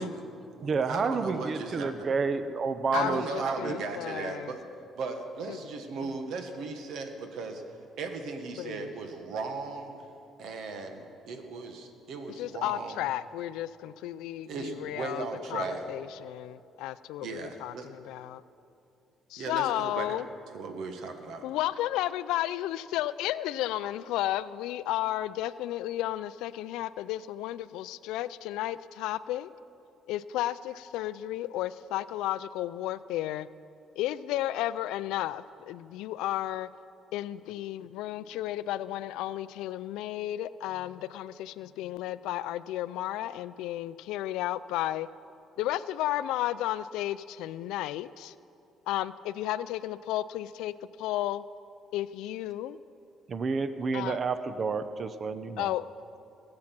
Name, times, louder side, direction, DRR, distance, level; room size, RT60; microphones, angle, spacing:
voice 1, 0.0-2.1 2.9-4.6 5.0-7.6 8.0-9.9 10.4-13.1 14.4-15.8 17.2-17.9 19.4-20.2 20.5-21.4, right 4 dB, 75° right, 5 dB, 1.5 m, -37 dB
voice 2, 0.6-3.8 53.3-55.7, right 4 dB, 45° right, 12 dB, 0.6 m, -30 dB
voice 3, 2.9-4.5 5.5-5.6 6.0-6.1 8.6-8.9 12.4-15.2 15.5-18.4 19.3-20.3 21.4-29.5 30.1-33.5 34.0-36.7 37.1-45.1 45.6-48.3 48.9-50.7 51.0-51.4 51.9-52.8 53.9-54.2 55.6-55.9, left 14 dB, 90° left, 16 dB, 0.3 m, -33 dB
19.5 x 7.6 x 6.0 m, 2.6 s
cardioid pair, 100°, 0 cm